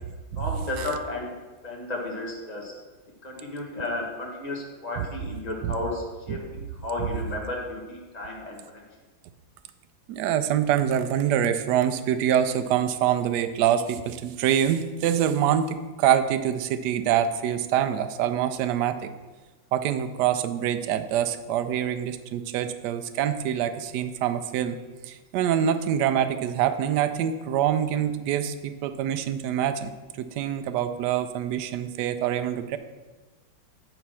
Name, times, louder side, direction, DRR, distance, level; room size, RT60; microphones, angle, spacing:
voice 1, 0.4-1.3 1.6-2.7 3.2-8.8, left 2 dB, 20° left, -2 dB, 1.5 m, -33 dB
voice 2, 10.1-19.1 19.7-24.8 25.0-29.9 30.2-32.8, right 10 dB, 70° right, 10 dB, 1.1 m, -25 dB
9.1 x 4.2 x 6.1 m, 1.3 s
omnidirectional pair, 2.1 m